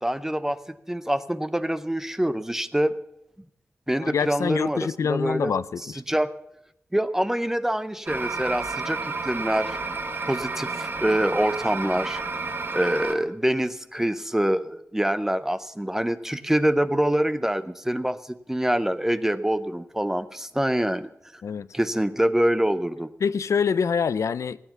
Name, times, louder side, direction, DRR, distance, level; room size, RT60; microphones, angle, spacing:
voice 1, 0.0-3.0 3.9-5.5 6.1-6.3 6.9-9.8 10.3-12.2 12.7-21.4 21.7-23.1, right 1 dB, 10° right, 0.6 m, -25 dB
voice 2, 4.0-5.8 21.4-21.7 23.2-24.6, left 6 dB, 85° left, 0.5 m, -25 dB
sound 1, 8.1-13.1, right 3 dB, 45° right, 1.1 m, -31 dB
16.5 x 9.4 x 7.0 m
wide cardioid pair, 130°, 5 cm